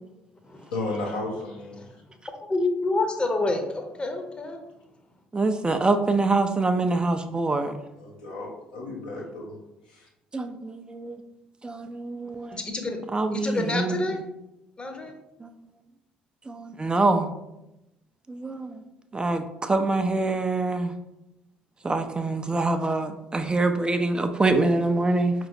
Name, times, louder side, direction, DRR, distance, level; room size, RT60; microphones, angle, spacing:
voice 1, 0.7-2.0 7.9-9.6 9.9-10.1, left 2 dB, 85° left, -3 dB, 0.8 m, -34 dB
voice 2, 2.4-4.6 12.5-13.0 13.3-14.2 14.8-15.1, left 2 dB, 25° left, 4 dB, 0.7 m, -28 dB
voice 3, 5.3-7.8 10.3-11.2 11.6-12.6 13.1-14.2 15.4-15.5 16.5-17.3 18.3-18.8 19.1-20.9 21.8-25.3, right 3 dB, 20° right, 7 dB, 0.4 m, -25 dB
4.7 x 2.9 x 2.6 m, 0.90 s
hypercardioid pair, 50°, 4 cm